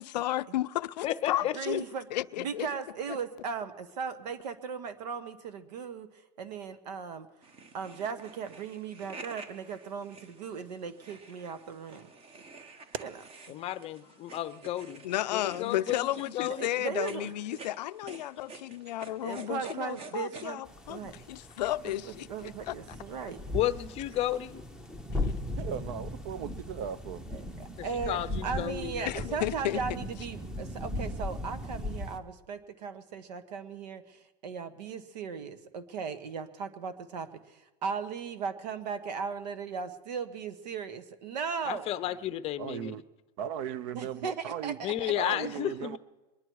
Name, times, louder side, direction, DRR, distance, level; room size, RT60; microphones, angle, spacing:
voice 1, 0.0-1.8 2.1-2.7 3.1-3.2 15.0-22.8 29.0-29.8, left 14 dB, 90° left, 0.5 m, -33 dB
voice 2, 1.0-1.5 13.5-15.0 15.3-16.7 23.5-24.6 28.1-29.1 41.6-42.9 44.8-46.0, left 13 dB, 30° left, 0.6 m, -32 dB
voice 3, 1.5-2.0 2.4-6.1 6.4-7.3 7.7-12.1 13.0-13.1 16.6-17.3 19.2-20.6 20.9-21.1 22.0-23.4 27.8-41.9 43.9-45.1, right 6 dB, 80° right, 1.4 m, -37 dB
sound 1, 7.4-20.4, right 4 dB, 25° right, 1.1 m, -50 dB
sound 2, 20.7-32.2, left 1 dB, 5° right, 0.8 m, -38 dB
voice 4, 25.6-27.2 42.6-43.0 43.4-44.8 45.2-46.0, right 9 dB, 50° right, 0.7 m, -37 dB
23.0 x 10.5 x 4.7 m
supercardioid pair, 140°, 21 cm